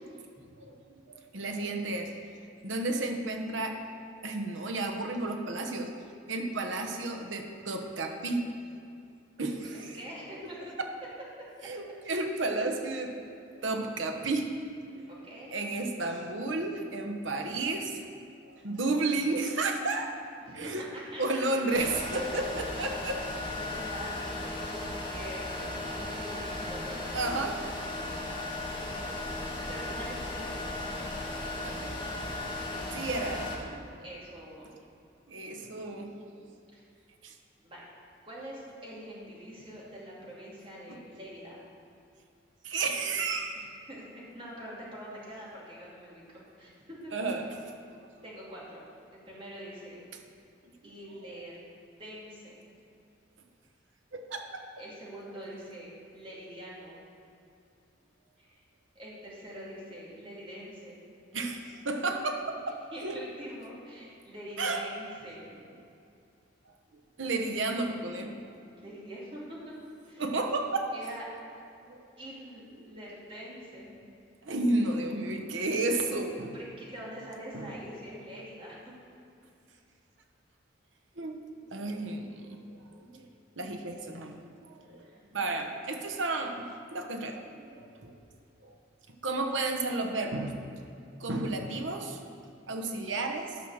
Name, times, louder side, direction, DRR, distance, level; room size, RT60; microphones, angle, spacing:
voice 1, 1.3-2.3 2.6-3.8 4.2-5.9 6.3-8.4 9.4-10.0 11.6-13.1 13.5-14.5 14.9-15.1 15.5-18.1 18.4-20.1 20.6-20.9 21.2-23.2 27.1-27.6 31.6-32.1 32.4-32.5 32.9-34.0 35.3-36.1 36.4-36.5 37.2-37.3 40.9-41.0 42.6-43.5 47.1-47.7 54.1-54.6 61.3-63.2 64.6-64.8 67.2-68.3 70.2-70.9 71.9-72.1 72.9-73.0 74.4-76.5 77.5-77.7 81.2-81.4 81.7-83.2 83.6-85.1 85.3-88.2 88.6-88.7 89.2-90.8 91.2-92.2 92.7-93.6, right 2 dB, 85° right, 4 dB, 1.1 m, -32 dB
voice 2, 9.7-10.7 11.6-11.7 12.0-12.2 15.1-15.5 20.4-21.6 23.6-27.2 29.7-30.6 34.0-34.7 36.7-36.9 37.6-37.9 38.2-41.6 43.5-47.1 48.2-48.8 49.1-50.0 50.8-51.6 52.0-52.6 54.8-57.0 58.4-58.6 58.9-61.0 62.9-65.5 68.7-69.7 70.1-70.5 70.9-71.3 72.2-74.0 76.5-78.8 85.0-85.3, equal, 30° right, -6 dB, 2.6 m, -45 dB
sound 1, 21.7-33.6, left 2 dB, 25° left, 1.7 m, -36 dB
10.5 x 6.2 x 6.5 m, 2.5 s
head